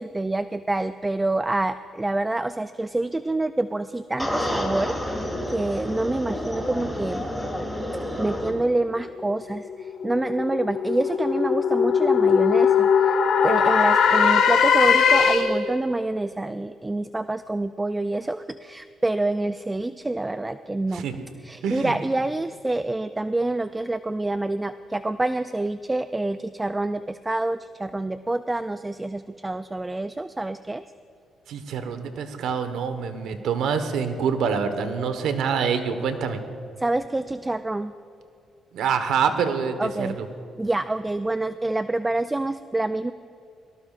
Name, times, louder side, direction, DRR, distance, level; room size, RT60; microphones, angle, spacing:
voice 1, 0.0-7.3 8.2-13.2 13.4-21.0 21.4-30.8 36.8-37.9 39.8-40.2 40.6-43.1, right 2 dB, 15° right, 12 dB, 0.4 m, -27 dB
sound 1, 4.2-8.5, left 1 dB, ahead, 2.9 m, -29 dB
sound 2, 9.6-15.7, left 6 dB, 75° left, 1.4 m, -20 dB
voice 2, 20.9-21.3 21.6-22.0 31.5-36.4 38.7-40.3, right 6 dB, 80° right, 8 dB, 1.2 m, -26 dB
22.5 x 18.5 x 2.5 m, 2.5 s
cardioid pair, 90°, 0 cm